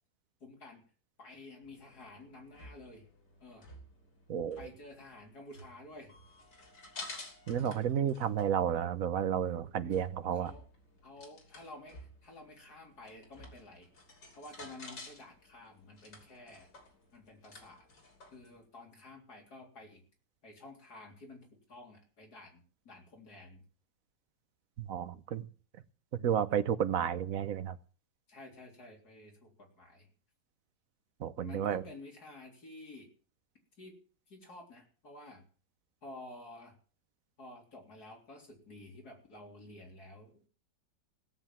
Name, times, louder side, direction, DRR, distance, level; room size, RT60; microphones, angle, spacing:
voice 1, 0.4-0.8 1.2-3.1 3.4-3.7 4.6-6.2 9.9-10.7 11.0-13.9 14.4-16.7 17.1-17.9 18.3-20.0 20.4-23.6 28.3-30.1 31.4-33.1 33.8-34.0 34.3-35.4 36.0-36.8 37.4-40.5, left 2 dB, 65° left, 0 dB, 4.2 m, -51 dB
sound 1, 1.6-18.7, left 2 dB, 90° left, 3.8 m, -53 dB
voice 2, 4.3-4.7 7.5-10.5 24.8-25.5 26.1-27.7 31.2-31.8, right 9 dB, 60° right, 12 dB, 1.2 m, -32 dB
17.0 x 7.8 x 7.6 m, 0.40 s
omnidirectional pair, 1.8 m